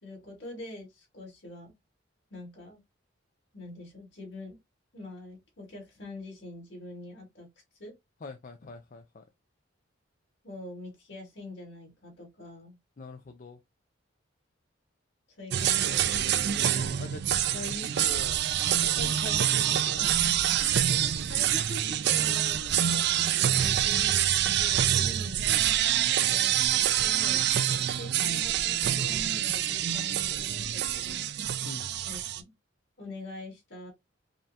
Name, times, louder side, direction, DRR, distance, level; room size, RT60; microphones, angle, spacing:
voice 1, 0.0-1.7 2.3-2.8 3.5-4.6 4.9-7.5 7.8-7.9 10.4-12.8 15.3-16.1 21.3-22.6 23.4-25.4 26.2-27.5 28.0-31.3 32.0-32.5 33.0-33.9, left 1 dB, 60° left, 2.2 m, -44 dB
voice 2, 8.2-9.3 13.0-13.6 16.5-18.4 18.7-20.3 22.6-22.9 25.5-25.8 27.5-28.0 31.6-31.9, left 3 dB, 40° left, 0.4 m, -43 dB
sound 1, 15.5-32.4, right 10 dB, 55° right, 0.4 m, -26 dB
5.3 x 2.3 x 2.7 m
head